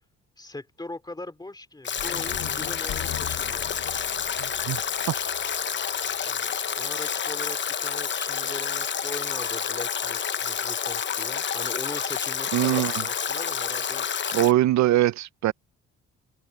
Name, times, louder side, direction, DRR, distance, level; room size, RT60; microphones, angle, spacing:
voice 1, 0.4-3.7 6.2-14.4, left 2 dB, 15° left, 2.6 m, -40 dB
Stream / Drip / Trickle dribble, 1.8-14.5, left 7 dB, 40° left, 0.9 m, -29 dB
sound 1, 2.0-6.2, left 12 dB, 80° left, 2.3 m, -40 dB
voice 2, 4.4-4.8 5.1-5.2 12.5-13.0 14.3-15.5, right 14 dB, 65° right, 0.6 m, -22 dB
cardioid pair, 90°, 30 cm